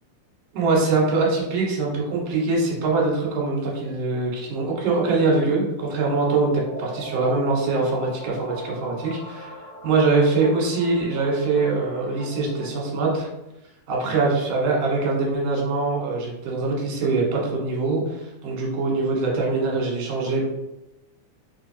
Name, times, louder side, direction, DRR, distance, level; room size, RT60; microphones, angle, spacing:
voice 1, 0.5-9.5 9.8-13.3 13.9-20.4, right 3 dB, 70° right, -3 dB, 2.7 m, -23 dB
sound 1, 6.5-13.2, equal, 65° left, 1.0 m, -39 dB
4.9 x 4.0 x 2.8 m, 0.92 s
omnidirectional pair, 4.0 m